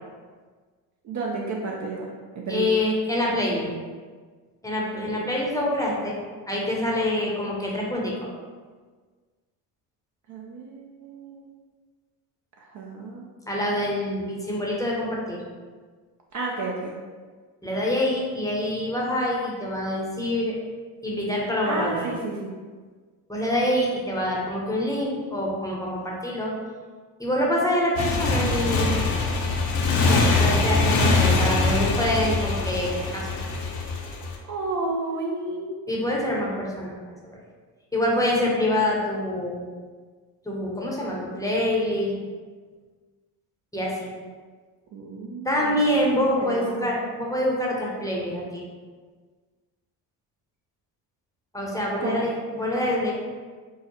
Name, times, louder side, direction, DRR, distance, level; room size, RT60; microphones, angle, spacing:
voice 1, 1.0-2.1 2.5-2.7 4.9-5.1 10.3-11.5 12.6-13.3 16.3-16.9 21.7-22.5 34.5-35.8 44.9-45.8 46.4-46.8 52.0-52.2, right 3 dB, 40° right, -1 dB, 0.5 m, -31 dB
voice 2, 2.5-3.8 4.6-6.1 6.5-8.1 13.5-15.4 17.6-20.5 21.0-22.1 23.3-26.5 27.2-28.9 30.0-33.3 35.9-37.4 37.9-39.7 40.4-42.1 43.7-44.1 45.4-48.6 51.5-53.1, left 1 dB, 5° left, -3 dB, 0.8 m, -26 dB
Motorcycle, 28.0-34.3, left 3 dB, 50° left, 0.8 m, -23 dB
4.6 x 2.0 x 3.0 m, 1.5 s
supercardioid pair, 75°, 48 cm